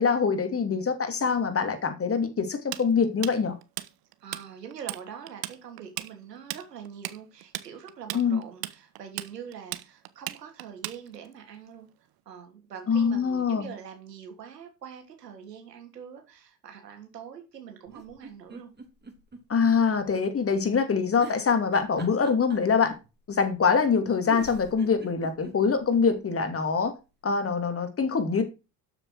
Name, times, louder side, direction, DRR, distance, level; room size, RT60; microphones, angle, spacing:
voice 1, 0.0-3.5 8.1-8.4 12.9-13.7 19.5-23.0 23.3-26.9 27.2-28.4, left 5 dB, 30° left, 2.6 m, -24 dB
Tools, 2.7-4.4 4.7-5.0 5.3-11.3, right 16 dB, 45° right, 1.2 m, -36 dB
voice 2, 4.2-11.9 12.2-18.7, right 8 dB, 80° right, 3.2 m, -44 dB
sound 1, 17.9-19.8 20.1-20.2 21.2-23.1 23.9-24.0 24.3-26.0 26.5-26.6 26.8-26.9, right 4 dB, 20° right, 3.8 m, -43 dB
12.5 x 6.6 x 4.8 m
figure-of-eight pair, 60°, 48 cm